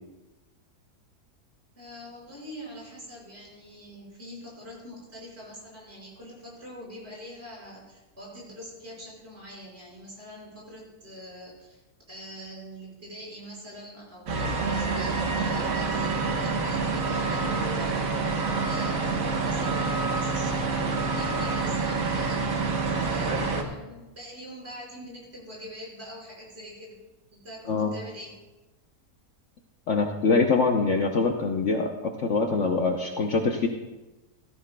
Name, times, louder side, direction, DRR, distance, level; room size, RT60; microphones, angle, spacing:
voice 1, 1.8-11.8 12.1-22.4 23.0-27.0 27.3-28.3, equal, 40° right, -5 dB, 5.5 m, -44 dB
sound 1, 14.3-23.6, right 4 dB, 65° right, 1.5 m, -27 dB
voice 2, 29.9-33.7, left 4 dB, 55° left, 3 dB, 1.0 m, -24 dB
17.0 x 14.0 x 2.2 m, 1.1 s
omnidirectional pair, 1.7 m